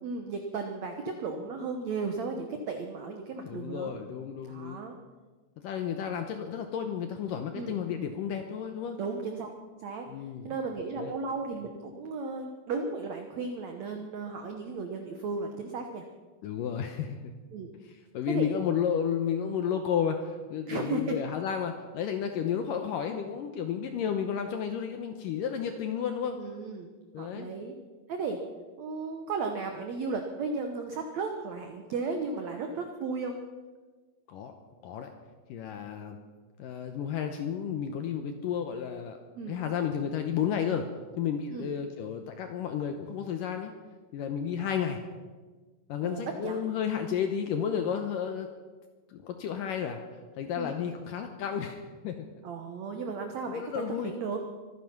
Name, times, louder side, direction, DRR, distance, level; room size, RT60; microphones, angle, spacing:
voice 1, 0.0-3.9 4.5-5.0 7.5-7.7 9.0-9.5 9.8-10.1 10.4-16.0 17.5-17.7 18.3-18.5 20.7-21.2 26.4-26.9 27.2-27.7 28.1-28.4 28.8-33.4 39.3-39.6 41.5-41.7 46.0-46.6 50.6-50.8 52.4-54.4, right 4 dB, 90° right, 4 dB, 1.5 m, -35 dB
voice 2, 3.4-4.8 5.6-9.0 10.1-10.5 11.0-11.1 16.4-17.3 17.8-26.4 27.1-27.5 34.3-34.6 34.8-35.1 35.5-36.2 36.6-39.2 39.5-40.9 41.2-43.7 44.1-45.0 45.9-48.5 49.1-50.0 50.4-52.2 53.5-54.1, left 8 dB, 75° left, 6 dB, 2.0 m, -32 dB
24.0 x 10.0 x 5.9 m, 1.4 s
omnidirectional pair, 4.8 m